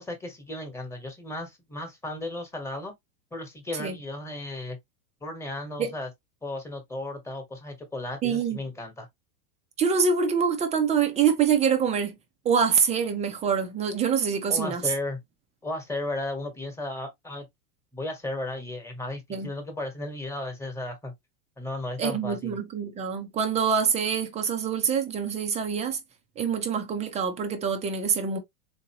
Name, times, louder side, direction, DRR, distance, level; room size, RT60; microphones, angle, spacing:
voice 1, 0.0-2.9 3.3-4.8 5.2-6.1 6.4-9.1 14.5-15.2 15.6-17.5 17.9-21.1 21.6-22.6, left 2 dB, 5° left, 1.2 m, -35 dB
voice 2, 8.2-8.6 9.8-12.2 12.4-14.8 19.3-19.5 22.0-26.0 26.4-28.4, right 6 dB, 15° right, 0.4 m, -25 dB
3.9 x 2.8 x 2.8 m
supercardioid pair, 130°, 46 cm